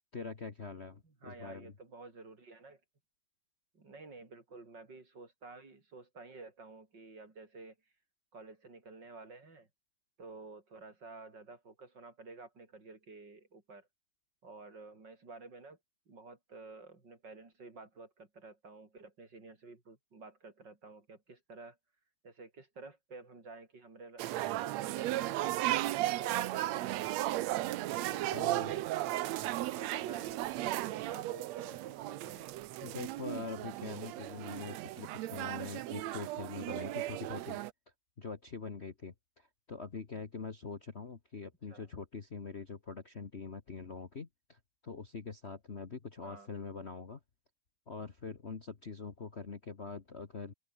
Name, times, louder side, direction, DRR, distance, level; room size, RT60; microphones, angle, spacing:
voice 1, 0.1-1.7 28.3-28.7 32.8-37.6 38.2-47.2 47.9-50.5, left 4 dB, 80° left, 0.5 m, -44 dB
voice 2, 1.0-2.8 3.7-7.8 8.3-9.7 10.2-13.9 14.4-15.8 16.1-21.8 22.2-27.3 28.0-29.3 29.6-32.5 41.7-41.9 46.2-46.5, right 3 dB, 35° right, 4.7 m, -51 dB
sound 1, 24.2-37.7, right 15 dB, 75° right, 1.8 m, -35 dB
open air
omnidirectional pair, 3.6 m